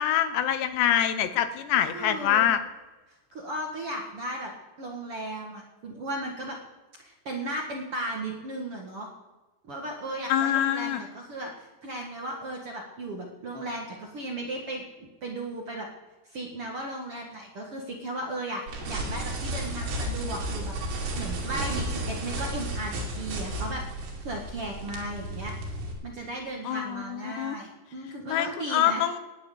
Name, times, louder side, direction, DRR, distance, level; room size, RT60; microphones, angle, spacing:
voice 1, 0.0-2.6 10.3-11.0 26.6-27.6 28.3-29.2, left 10 dB, 85° left, 10 dB, 3.3 m, -25 dB
voice 2, 1.9-2.5 3.3-4.5 4.8-6.6 7.0-9.1 9.7-15.9 16.3-23.8 24.2-25.5 26.0-29.0, right 1 dB, 50° right, 0 dB, 1.8 m, -36 dB
sound 1, 18.7-25.9, right 1 dB, 80° right, 4.9 m, -33 dB
16.0 x 7.9 x 9.8 m, 1.2 s
omnidirectional pair, 4.9 m